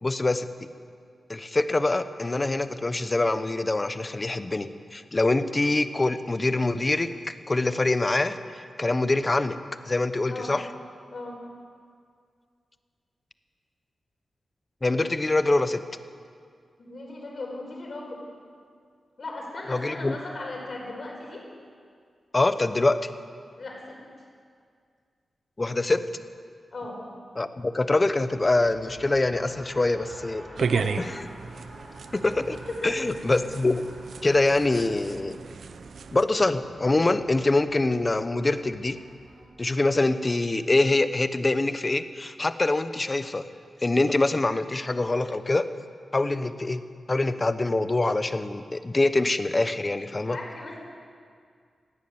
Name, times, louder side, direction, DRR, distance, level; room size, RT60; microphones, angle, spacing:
voice 1, 0.0-0.5 1.3-7.1 7.5-9.6 9.8-10.6 14.8-15.8 19.7-20.1 22.3-23.1 25.6-26.1 27.4-30.4 31.0-31.3 32.1-32.6 32.8-33.9 34.2-35.4 36.1-39.0 39.6-43.4 43.8-45.7 46.1-46.8 47.1-50.4, left 2 dB, 20° left, 11 dB, 0.8 m, -24 dB
voice 2, 16.8-18.2 19.2-21.5 23.6-24.0 26.7-27.0 30.5-31.1 32.7-33.1 50.3-50.8, left 2 dB, 40° left, -1 dB, 5.1 m, -37 dB
Race car auto racing, 28.1-39.4, right 1 dB, 20° right, 4.4 m, -49 dB
sound 1, 30.6-36.2, right 5 dB, 65° right, 0.7 m, -34 dB
17.0 x 16.0 x 9.5 m, 2.1 s
wide cardioid pair, 175°, 0 cm